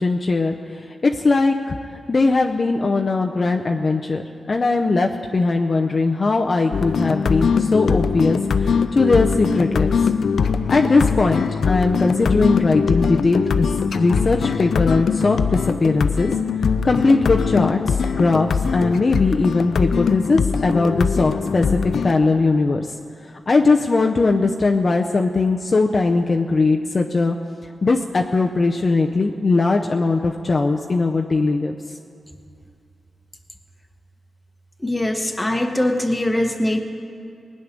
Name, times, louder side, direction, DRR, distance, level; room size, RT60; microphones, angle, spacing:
voice 1, 0.0-4.2 4.5-10.1 10.7-13.7 13.9-16.3 16.8-22.9 23.2-27.4 27.8-32.0, left 3 dB, 40° left, 2 dB, 0.6 m, -19 dB
sound 1, 6.7-22.1, left 6 dB, 85° left, 0.5 m, -22 dB
voice 2, 34.8-36.8, left 1 dB, 10° left, 3 dB, 1.3 m, -22 dB
19.5 x 6.6 x 9.8 m, 2.3 s
wide cardioid pair, 105°, 0 cm